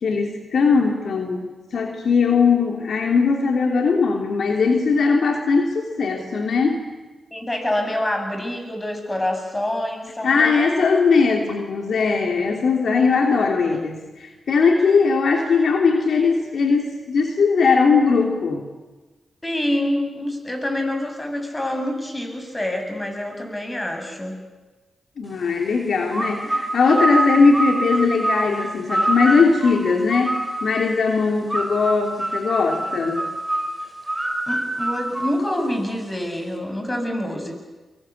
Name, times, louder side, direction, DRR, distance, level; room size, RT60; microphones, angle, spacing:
voice 1, 0.0-6.8 10.2-18.6 25.2-30.4 30.6-33.2, left 4 dB, 70° left, 2 dB, 3.1 m, -19 dB
voice 2, 7.3-10.8 19.4-24.4 34.5-37.5, left 1 dB, 25° left, 5 dB, 7.7 m, -26 dB
sound 1, 26.1-30.8 31.5-36.0, right 1 dB, 10° right, 6.1 m, -25 dB
24.5 x 23.5 x 8.5 m, 1.2 s
supercardioid pair, 45°, 0 cm